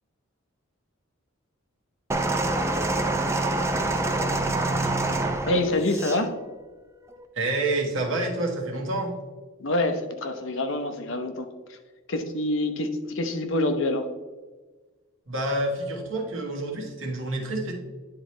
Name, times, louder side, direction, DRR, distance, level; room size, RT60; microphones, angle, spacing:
sound 1, 2.1-6.2 7.1-7.2, right 2 dB, 15° right, 0.4 m, -26 dB
voice 1, 5.5-6.3 9.6-11.5 12.1-14.1, left 2 dB, 60° left, 7 dB, 0.7 m, -26 dB
voice 2, 7.3-9.1 15.3-17.7, right 2 dB, 60° right, -1 dB, 1.4 m, -28 dB
9.9 x 3.8 x 3.1 m, 1.3 s
head